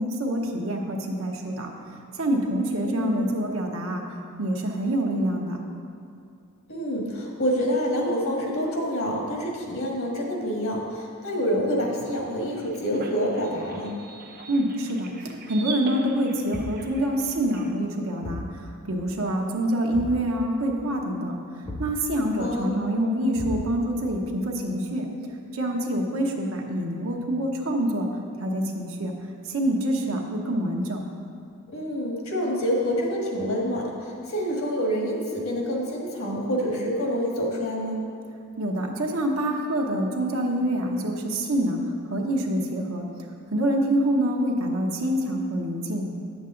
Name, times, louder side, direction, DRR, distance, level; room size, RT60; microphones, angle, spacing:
voice 1, 0.0-1.7 2.2-4.0 4.4-5.6 14.5-15.1 15.5-21.4 21.8-25.1 25.5-28.1 28.4-29.1 29.4-31.0 38.6-41.8 42.1-43.1 43.5-46.1, right 1 dB, 70° right, 0 dB, 0.9 m, -26 dB
voice 2, 2.8-3.3 6.7-13.9 22.4-22.9 31.7-38.0, equal, 70° left, -1 dB, 1.6 m, -27 dB
sound 1, 12.2-17.7, right 4 dB, 45° right, 0.7 m, -41 dB
Thump thud, 16.5-17.0 18.2-18.6 19.9-20.3 21.6-22.0 23.3-23.9, left 1 dB, 30° left, 0.7 m, -35 dB
9.6 x 7.2 x 3.8 m, 2.4 s
head